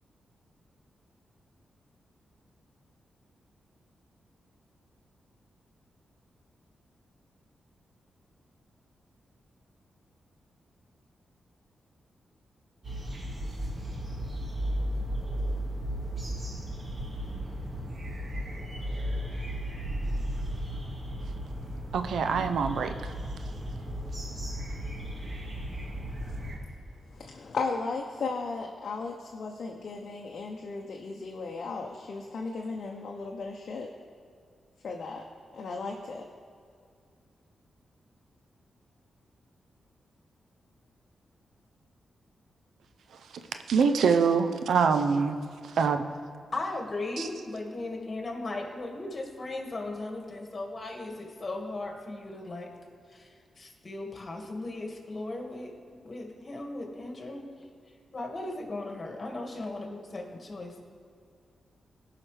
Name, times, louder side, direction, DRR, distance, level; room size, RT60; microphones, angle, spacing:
sound 1, 12.8-26.6, equal, 45° right, 1.9 m, -35 dB
voice 1, 21.9-23.1 43.7-45.4 45.6-46.0 47.2-47.3, right 5 dB, 85° right, 8 dB, 0.5 m, -24 dB
voice 2, 27.1-33.9 34.8-35.2 35.5-36.3, left 4 dB, 65° left, 1 dB, 0.7 m, -35 dB
voice 3, 46.5-52.7 53.1-57.5 58.1-60.8, left 2 dB, 40° left, 1 dB, 1.8 m, -37 dB
17.0 x 5.8 x 3.3 m, 2.2 s
cardioid pair, 65°, 0 cm